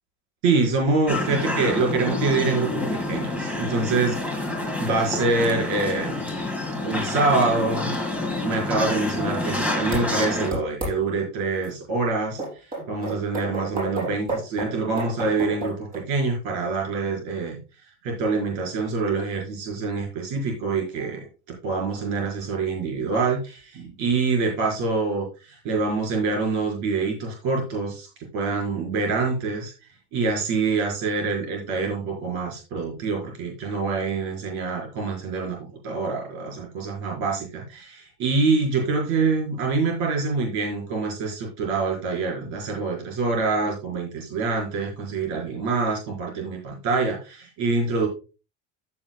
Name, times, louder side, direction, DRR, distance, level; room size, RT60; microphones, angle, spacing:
voice 1, 0.4-4.4 4.8-6.2 6.8-7.9 8.4-12.4 12.9-17.6 18.0-21.3 21.6-28.1 28.3-29.7 30.1-35.6 35.8-48.1, right 3 dB, 60° right, -1 dB, 4.8 m, -25 dB
sound 1, 1.1-10.5, left 2 dB, 5° right, 1.9 m, -28 dB
sound 2, 9.9-10.0 10.5-10.9 11.6-11.7 12.4-16.0, right 2 dB, 25° right, 6.1 m, -30 dB
15.0 x 7.6 x 2.3 m, 0.33 s
cardioid pair, 175°, 33 cm